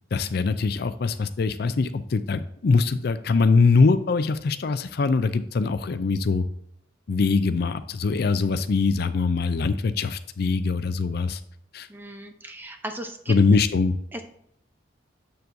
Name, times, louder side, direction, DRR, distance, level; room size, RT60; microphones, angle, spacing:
voice 1, 0.1-6.4 7.1-11.4 11.7-11.9 13.3-13.9, left 4 dB, 55° left, 12 dB, 0.4 m, -22 dB
voice 2, 11.9-13.3 14.1-14.2, right 1 dB, 10° right, 5 dB, 0.8 m, -36 dB
7.7 x 7.0 x 2.6 m, 0.73 s
head